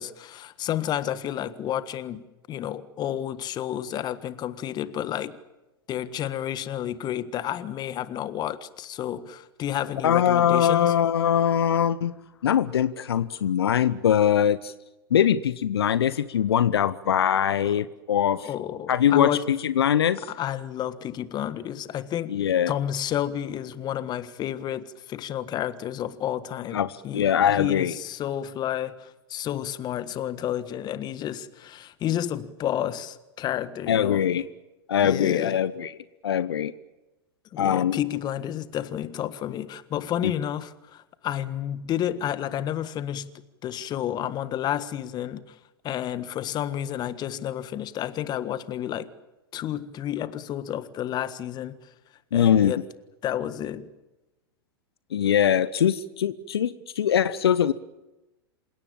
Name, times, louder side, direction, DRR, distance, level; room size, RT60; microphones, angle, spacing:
voice 1, 0.0-5.4 5.9-10.9 17.6-17.8 18.3-19.5 20.2-22.4 22.7-34.2 35.0-35.6 37.5-43.3 43.6-45.5 45.8-49.1 49.5-51.8 52.3-52.8 53.2-53.9, left 11 dB, 30° left, 1.5 m, -31 dB
voice 2, 10.0-12.1 12.4-14.7 15.1-18.5 18.9-20.2 22.3-22.7 26.7-27.9 33.9-34.5 34.9-35.9 36.2-36.7 37.6-38.0 40.2-40.3 52.3-52.7 55.1-57.7, left 9 dB, 75° left, 0.8 m, -22 dB
27.5 x 17.5 x 8.9 m
hypercardioid pair, 100°, 13 cm